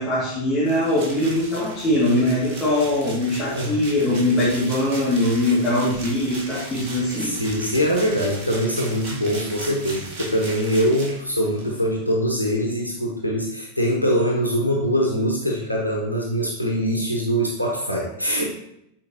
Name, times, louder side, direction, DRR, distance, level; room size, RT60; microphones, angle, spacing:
voice 1, 0.0-7.3, left 1 dB, 15° left, -12 dB, 2.4 m, -21 dB
sound 1, 0.6-11.8, right 2 dB, 40° right, 2.1 m, -37 dB
voice 2, 7.2-18.5, equal, 90° right, -2 dB, 0.9 m, -23 dB
8.6 x 4.4 x 2.9 m, 0.77 s
figure-of-eight pair, 90°, 0 cm